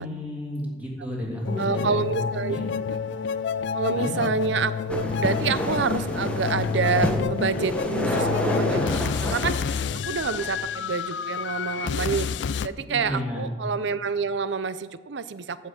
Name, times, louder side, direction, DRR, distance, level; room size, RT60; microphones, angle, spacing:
voice 1, 0.0-2.0 2.5-2.6 3.9-4.2 12.7-13.5, equal, 10° right, -4 dB, 3.2 m, -32 dB
sound 1, 1.4-12.7, left 6 dB, 75° left, 0.4 m, -29 dB
voice 2, 1.6-2.6 3.7-12.3 12.6-15.6, right 5 dB, 75° right, 14 dB, 0.5 m, -28 dB
sound 2, 4.9-10.6, equal, 5° left, 1.1 m, -29 dB
14.5 x 5.7 x 7.2 m, 1.4 s
head